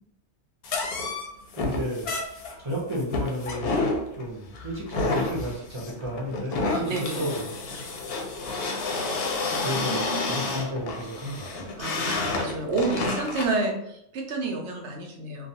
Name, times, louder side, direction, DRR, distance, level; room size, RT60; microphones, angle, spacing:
sound 1, 0.6-13.6, left 3 dB, 65° left, 0.7 m, -30 dB
voice 1, 1.5-2.1 2.6-3.9 4.2-7.5 9.6-11.6, equal, 30° right, -5 dB, 0.6 m, -32 dB
voice 2, 6.5-7.3 9.5-10.4 11.8-15.5, right 3 dB, 75° right, 2 dB, 0.9 m, -30 dB
2.3 x 2.3 x 2.7 m, 0.74 s
omnidirectional pair, 1.2 m